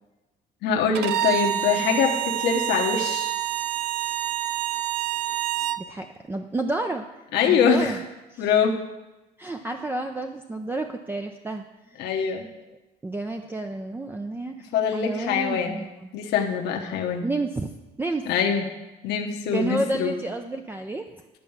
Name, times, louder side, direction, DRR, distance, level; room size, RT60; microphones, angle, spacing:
voice 1, 0.6-3.3 7.3-8.0 8.4-8.8 12.0-12.4 14.7-15.8 16.1-17.2 18.2-18.6 19.0-20.1, left 6 dB, 80° left, 1 dB, 1.1 m, -23 dB
Bowed string instrument, 0.9-5.8, right 12 dB, 85° right, 0.5 m, -27 dB
voice 2, 5.8-7.1 7.5-8.0 8.3-8.5 9.4-12.3 13.0-16.2 17.2-17.7 18.0-18.3 19.5-21.0, right 2 dB, 10° right, 4 dB, 0.5 m, -30 dB
11.0 x 4.5 x 7.1 m, 1.1 s
cardioid pair, 110°, 17 cm